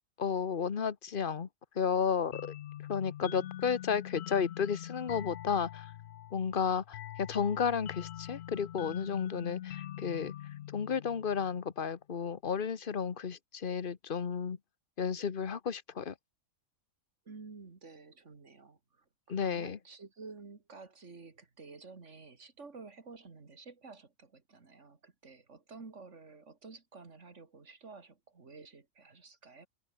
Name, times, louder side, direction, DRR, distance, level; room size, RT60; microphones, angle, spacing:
voice 1, 0.2-1.5 1.7-2.5 2.9-5.9 6.3-10.3 10.7-14.6 15.0-16.1 19.3-19.8, left 6 dB, 45° left, 1.2 m, -32 dB
sound 1, 2.3-11.7, left 12 dB, 65° left, 0.8 m, -44 dB
voice 2, 17.3-29.7, right 4 dB, 65° right, 2.6 m, -51 dB
omnidirectional pair, 1.4 m